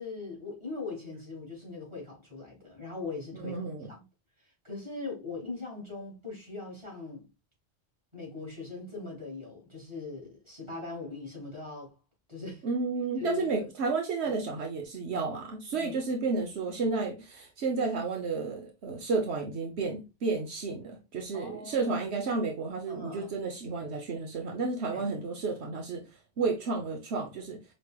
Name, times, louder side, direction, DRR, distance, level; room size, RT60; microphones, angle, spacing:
voice 1, 0.0-3.6 3.9-4.0 4.4-7.3 8.1-11.9 12.3-12.6 13.2-13.7 15.7-15.9 21.3-21.9 22.9-23.4 24.9-25.0, left 4 dB, 25° right, 2.7 m, -40 dB
voice 2, 3.3-3.9 12.6-26.0 26.4-27.6, right 4 dB, 80° right, 1.1 m, -32 dB
5.1 x 3.3 x 2.3 m
omnidirectional pair, 1.1 m